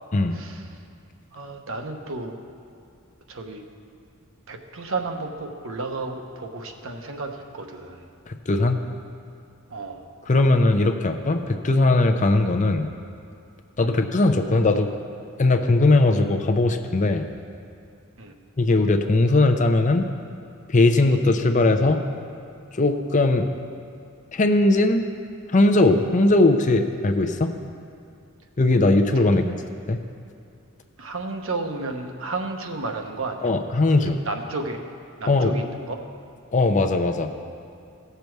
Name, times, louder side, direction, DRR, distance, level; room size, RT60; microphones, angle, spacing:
voice 1, 0.3-0.6 1.3-2.4 3.3-3.6 4.5-8.1 9.7-10.1 13.8-14.0 18.2-18.3 29.1-29.5 31.0-33.5 34.1-34.8 35.2-36.0, right 3 dB, 65° right, 4 dB, 1.0 m, -32 dB
voice 2, 8.3-8.8 10.3-12.9 13.8-15.0 15.4-17.3 18.6-20.1 20.7-22.0 22.7-23.5 24.3-25.1 25.5-27.6 28.6-29.5 29.9-30.0 33.4-34.2 35.3-35.5 36.5-37.3, left 2 dB, 35° left, 6 dB, 0.6 m, -19 dB
17.0 x 6.8 x 4.6 m, 2.4 s
head